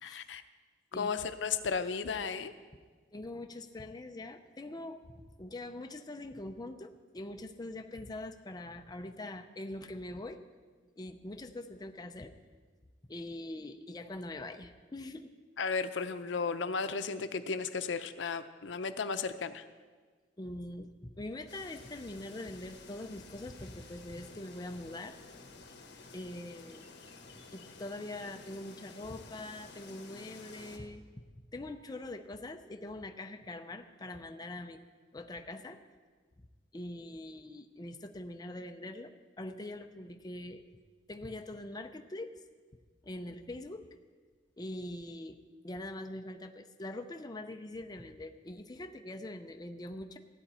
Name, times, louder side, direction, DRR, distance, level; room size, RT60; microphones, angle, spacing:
voice 1, 0.0-0.4 0.9-2.5 15.6-19.6, left 5 dB, 85° left, 10 dB, 0.6 m, -34 dB
voice 2, 3.1-10.4 11.0-12.3 13.1-15.3 20.4-25.2 26.1-26.9 27.5-31.0 31.5-34.8 35.1-35.8 36.7-39.1 39.4-40.6 41.1-42.4 43.0-43.9 44.6-50.2, left 1 dB, 20° left, 6 dB, 0.6 m, -43 dB
sound 1, 21.5-30.8, left 3 dB, 65° left, 1.5 m, -52 dB
16.0 x 9.9 x 4.3 m, 1.5 s
head